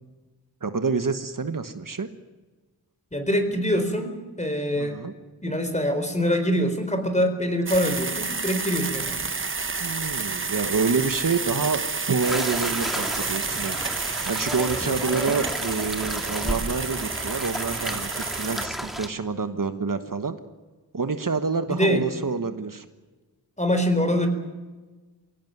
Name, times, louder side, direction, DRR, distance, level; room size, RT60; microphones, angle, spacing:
voice 1, 0.6-2.1 4.8-5.1 9.8-11.8 12.1-13.8 14.2-20.4 20.9-22.8, right 4 dB, 50° right, 9 dB, 1.3 m, -27 dB
voice 2, 3.1-5.0 5.4-9.2 14.8-15.1 21.7-22.1 23.6-24.3, equal, 15° left, 7 dB, 4.1 m, -24 dB
sound 1, 7.7-18.7, right 4 dB, 30° right, 0.9 m, -30 dB
sound 2, 12.2-19.1, equal, ahead, 2.2 m, -32 dB
23.5 x 17.0 x 9.4 m, 1.3 s
wide cardioid pair, 85°, 40 cm